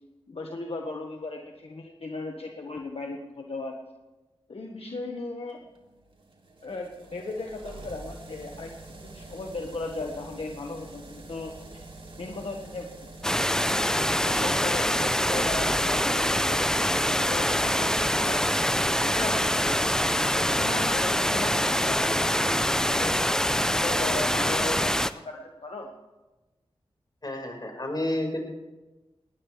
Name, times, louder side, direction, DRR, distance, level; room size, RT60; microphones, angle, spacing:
voice 1, 0.3-3.7 4.5-5.6 6.6-11.8 12.2-12.9 13.6-18.4 19.0-20.0 20.3-25.9, left 2 dB, 70° left, 1 dB, 1.5 m, -37 dB
sound 1, 5.6-15.9, right 2 dB, 60° right, 2.8 m, -45 dB
sound 2, 13.2-25.1, equal, 5° left, 0.6 m, -25 dB
voice 2, 27.2-28.5, left 1 dB, 40° left, 2 dB, 4.8 m, -30 dB
20.0 x 19.0 x 3.4 m, 1.1 s
wide cardioid pair, 55°, 10 cm